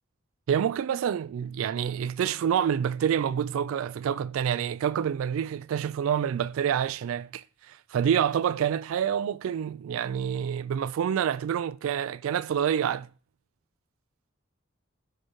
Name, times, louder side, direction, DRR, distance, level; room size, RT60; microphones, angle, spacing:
voice 1, 0.5-13.1, right 8 dB, 85° right, 0.3 m, -27 dB
6.5 x 4.9 x 3.0 m
head